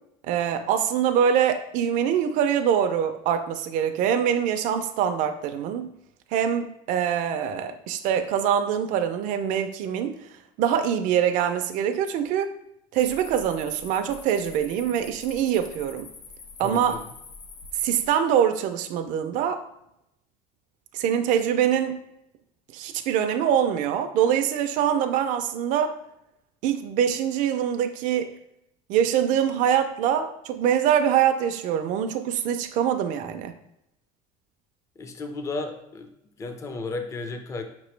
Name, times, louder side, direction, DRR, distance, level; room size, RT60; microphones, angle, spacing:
voice 1, 0.2-5.9 6.3-10.1 10.6-12.5 12.9-16.1 16.6-17.0 17.8-19.6 20.9-22.0 22.7-26.0 26.6-28.3 28.9-33.5, right 9 dB, 60° right, 7 dB, 0.4 m, -24 dB
sound 1, 12.9-18.1, left 3 dB, 80° left, 0.8 m, -45 dB
voice 2, 16.6-17.0 35.0-36.1 36.4-37.6, left 3 dB, 20° left, 6 dB, 0.4 m, -33 dB
5.1 x 2.9 x 3.1 m, 0.80 s
cardioid pair, 140°, 15 cm